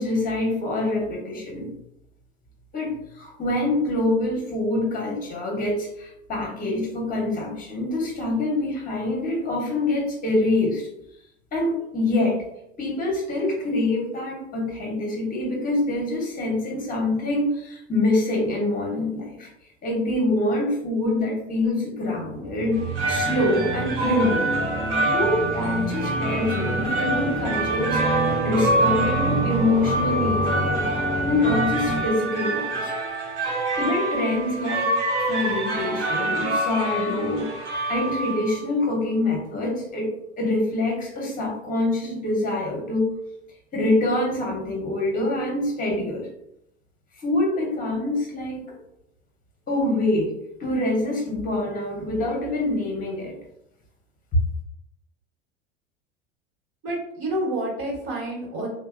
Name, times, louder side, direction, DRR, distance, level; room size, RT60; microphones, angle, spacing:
voice 1, 0.0-1.7 2.7-10.9 11.5-12.4 12.8-19.5 19.8-22.8 23.1-24.5 25.1-30.8 31.3-32.9 33.8-34.9 35.2-37.5 37.9-40.1 40.4-43.1 43.7-46.3 47.2-48.7 49.7-50.3 50.6-53.3, left 2 dB, 25° left, -1 dB, 0.9 m, -25 dB
sound 1, 22.3-32.0, right 2 dB, 15° right, 0.4 m, -28 dB
sound 2, 22.7-38.6, right 2 dB, 85° right, 0.8 m, -26 dB
voice 2, 56.8-58.7, right 1 dB, 40° right, -3 dB, 1.1 m, -28 dB
2.7 x 2.1 x 2.4 m, 0.82 s
hypercardioid pair, 85°, 34 cm